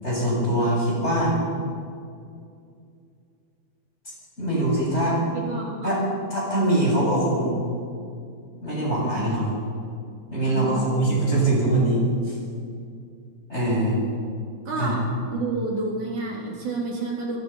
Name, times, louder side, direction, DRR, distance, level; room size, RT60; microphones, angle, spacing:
voice 1, 0.0-1.3 4.4-5.2 5.8-6.0 6.3-7.6 8.6-9.5 10.3-12.4 13.5-14.0 14.8-14.9, right 1 dB, 20° left, -5 dB, 8.3 m, -23 dB
voice 2, 5.3-6.1 10.5-10.9 14.7-15.1 15.3-17.4, right 3 dB, 80° right, -2 dB, 5.1 m, -29 dB
24.5 x 22.5 x 5.8 m, 2.4 s
omnidirectional pair, 3.4 m